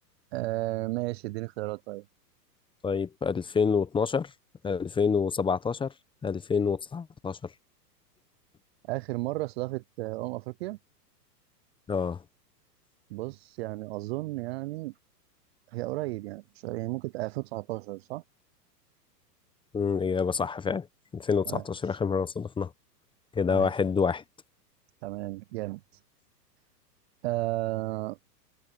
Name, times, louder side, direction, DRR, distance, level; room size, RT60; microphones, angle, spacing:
voice 1, 0.3-2.0 8.9-10.8 13.1-14.9 15.7-18.2 21.5-21.6 23.5-23.7 25.0-25.8 27.2-28.2, right 20 dB, 40° right, 0.6 m, -33 dB
voice 2, 2.8-4.3 4.6-5.9 6.2-7.4 11.9-12.2 19.7-20.9 21.1-22.7 23.3-24.2, left 5 dB, 10° left, 0.9 m, -27 dB
hypercardioid pair, 115°, 50 cm